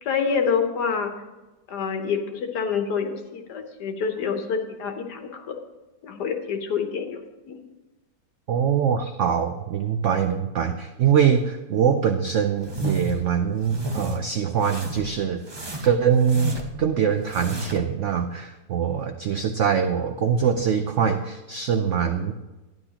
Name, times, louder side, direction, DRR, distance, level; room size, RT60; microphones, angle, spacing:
voice 1, 0.0-1.1 1.7-5.6 6.0-7.6, left 6 dB, 70° left, 5 dB, 1.6 m, -27 dB
voice 2, 8.5-15.4 15.8-22.3, right 7 dB, 90° right, 7 dB, 0.6 m, -23 dB
sound 1, 12.6-13.2 13.6-14.2 14.6-15.1 15.5-16.8 17.2-17.9, right 2 dB, 30° right, 0.5 m, -32 dB
12.0 x 10.0 x 2.9 m, 1.1 s
omnidirectional pair, 1.9 m